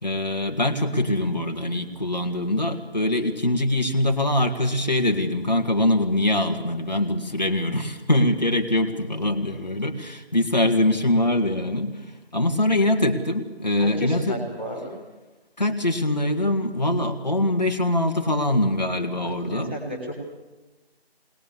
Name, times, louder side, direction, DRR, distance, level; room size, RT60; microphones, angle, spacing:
voice 1, 0.0-12.1 12.3-14.3 15.6-19.8, left 1 dB, 45° left, 3 dB, 2.1 m, -23 dB
voice 2, 13.8-14.9 19.2-20.1, equal, 10° right, -12 dB, 2.0 m, -33 dB
21.5 x 20.0 x 7.2 m, 1.2 s
figure-of-eight pair, 170°, 31 cm